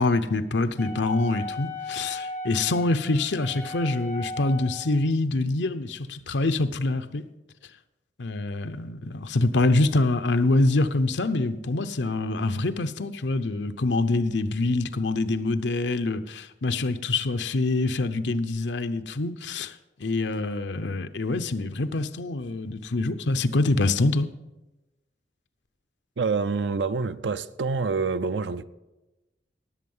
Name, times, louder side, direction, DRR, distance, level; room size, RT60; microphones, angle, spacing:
voice 1, 0.0-7.2 8.2-19.7 20.0-24.3, left 2 dB, 75° left, 0.7 m, -25 dB
Wind instrument woodwind instrument, 0.8-5.0, left 2 dB, 10° left, 2.5 m, -37 dB
voice 2, 26.2-28.6, right 4 dB, 80° right, 0.6 m, -27 dB
18.5 x 7.7 x 5.5 m
head